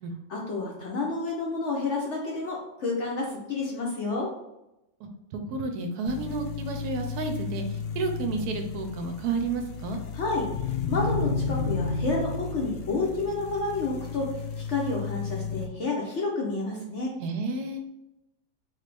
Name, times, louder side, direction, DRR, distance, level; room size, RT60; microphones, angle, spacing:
voice 1, 0.3-4.3 10.1-10.5 10.9-17.1, left 3 dB, 60° left, -2 dB, 0.8 m, -30 dB
voice 2, 5.3-10.0 17.2-17.8, right 3 dB, 70° right, 5 dB, 1.0 m, -31 dB
sound 1, 6.1-15.7, left 5 dB, 75° left, 1.1 m, -32 dB
3.9 x 3.2 x 3.3 m, 0.89 s
omnidirectional pair, 1.8 m